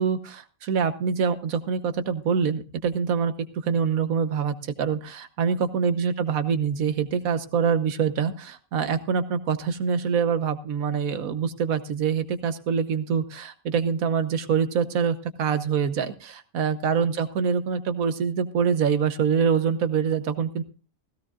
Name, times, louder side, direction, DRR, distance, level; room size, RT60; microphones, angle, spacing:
voice 1, 0.0-3.3 3.6-20.6, right 6 dB, 80° right, 11 dB, 1.4 m, -25 dB
17.0 x 16.0 x 2.4 m, 0.32 s
omnidirectional pair, 1.4 m